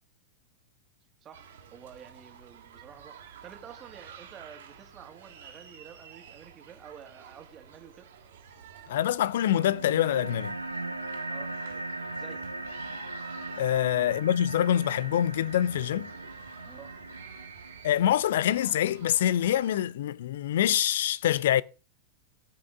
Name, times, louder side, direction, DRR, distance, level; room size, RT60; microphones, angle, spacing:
voice 1, 1.2-8.1 11.3-11.5 12.2-12.5 13.7-13.9 16.6-16.9, right 8 dB, 25° right, 2.0 m, -50 dB
sound 1, 1.3-19.8, right 7 dB, 65° right, 2.5 m, -51 dB
voice 2, 8.9-10.5 13.6-16.1 17.8-21.6, left 11 dB, 60° left, 0.5 m, -25 dB
sound 2, 9.5-18.5, right 2 dB, 85° right, 1.0 m, -39 dB
17.5 x 6.0 x 3.6 m
figure-of-eight pair, 90°, 0 cm